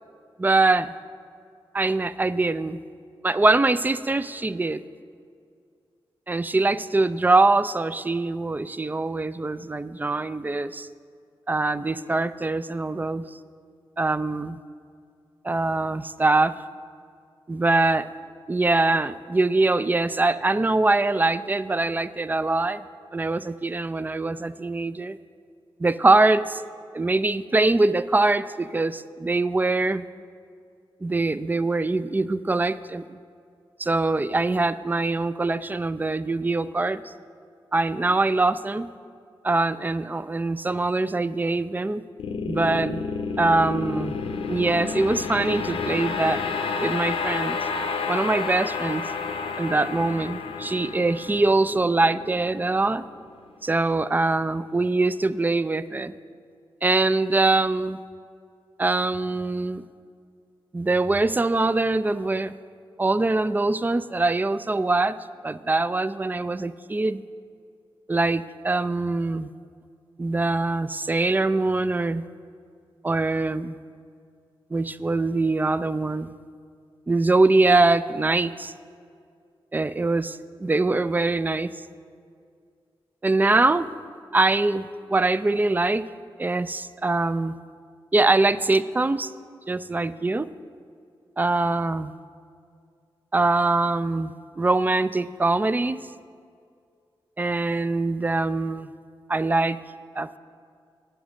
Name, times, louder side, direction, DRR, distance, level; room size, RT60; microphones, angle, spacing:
voice 1, 0.4-0.9 1.7-2.8 3.2-4.8 6.3-10.9 11.5-13.2 14.0-14.6 15.4-16.6 17.5-18.1 18.5-22.8 23.1-25.2 25.8-26.6 26.9-30.0 31.0-33.2 33.8-37.1 37.7-38.9 39.4-42.0 42.5-43.0 43.4-44.2 44.5-46.4 46.8-47.6 48.1-49.0 49.6-53.0 53.6-56.1 56.8-58.0 58.8-59.9 60.7-62.5 63.0-65.2 65.4-67.2 68.1-69.5 70.2-72.2 73.0-73.8 74.7-76.3 77.1-78.7 79.7-81.7 83.2-83.9 84.3-86.0 86.4-87.6 88.1-89.3 89.7-90.5 91.4-92.1 93.3-96.0 97.4-98.9 99.3-99.8 100.2-100.4, right 2 dB, 20° right, 15 dB, 0.3 m, -23 dB
sound 1, 42.2-53.4, left 5 dB, 85° left, 0.6 m, -30 dB
9.1 x 6.3 x 6.3 m, 2.3 s
cardioid pair, 60°, 9 cm